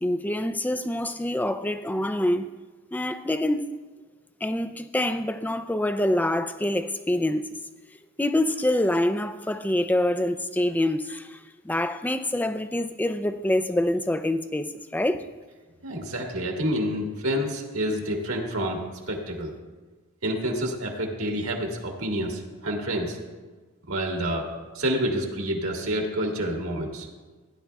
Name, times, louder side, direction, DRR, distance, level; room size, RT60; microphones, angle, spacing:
voice 1, 0.0-2.5 2.9-3.7 4.4-7.4 8.2-15.3, left 1 dB, 10° left, 0.3 m, -26 dB
voice 2, 15.8-18.8 19.1-19.5 20.2-23.2 23.9-24.5 24.7-27.1, equal, 75° right, 1.8 m, -28 dB
16.5 x 10.5 x 2.3 m
head